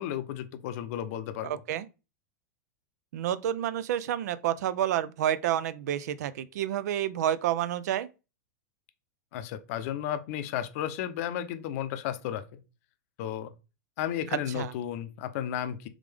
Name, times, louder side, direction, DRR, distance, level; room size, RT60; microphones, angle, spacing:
voice 1, 0.0-1.6 9.3-12.6 13.2-13.5 14.0-15.9, left 10 dB, 55° left, 0.6 m, -33 dB
voice 2, 1.4-1.9 3.1-8.1 14.5-14.7, right 11 dB, 70° right, 0.4 m, -29 dB
3.6 x 3.5 x 3.3 m
hypercardioid pair, 110°, 9 cm